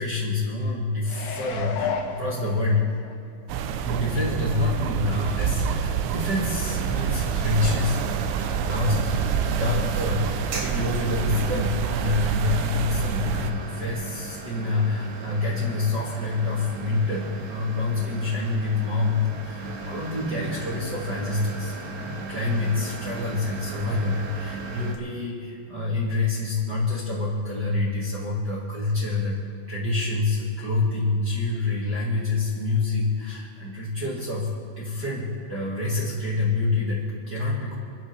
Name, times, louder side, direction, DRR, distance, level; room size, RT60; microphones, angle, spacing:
voice 1, 0.0-2.9 3.5-8.0 8.6-29.4 29.7-34.5 34.7-37.7, left 3 dB, 45° right, -7 dB, 1.4 m, -27 dB
sound 1, 1.1-3.1 3.6-3.7, left 6 dB, 75° left, 3.2 m, -32 dB
sound 2, 3.5-13.5, right 7 dB, 90° right, 3.4 m, -27 dB
sound 3, 6.2-25.0, right 3 dB, 65° right, 2.5 m, -37 dB
28.5 x 11.5 x 3.5 m, 2.5 s
omnidirectional pair, 5.6 m